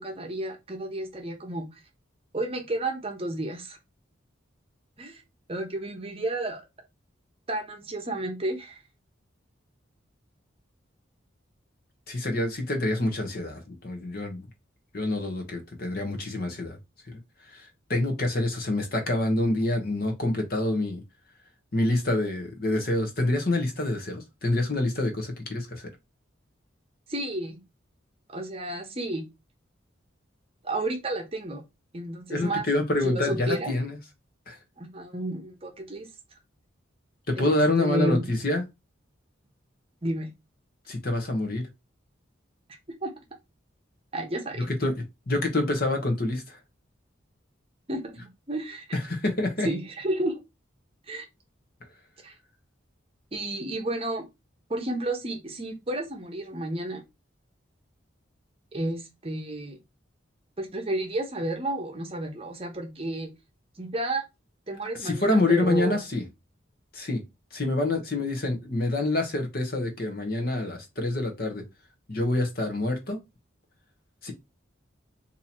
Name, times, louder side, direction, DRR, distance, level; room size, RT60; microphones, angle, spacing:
voice 1, 0.0-1.7 2.3-3.8 5.0-5.2 5.5-6.6 7.5-8.8 27.1-27.6 28.3-29.2 30.6-31.6 31.9-32.6 33.0-33.7 34.8-36.1 37.4-38.2 40.0-40.3 43.0-43.1 44.1-44.7 47.9-49.0 49.6-50.4 51.1-51.3 52.2-52.3 53.3-54.3 54.7-57.0 58.7-59.8 60.6-63.3 63.8-64.2 64.7-66.0, right 1 dB, 30° right, 0.8 m, -31 dB
voice 2, 12.1-14.4 14.9-16.8 17.1-17.2 17.5-21.0 21.7-25.9 32.3-34.0 34.5-34.6 37.3-38.6 40.9-41.6 44.7-46.6 48.9-49.7 65.0-66.2 66.9-67.2 67.5-71.6 72.1-73.2 74.2-74.3, left 2 dB, 50° left, 0.9 m, -27 dB
2.9 x 2.7 x 4.2 m
head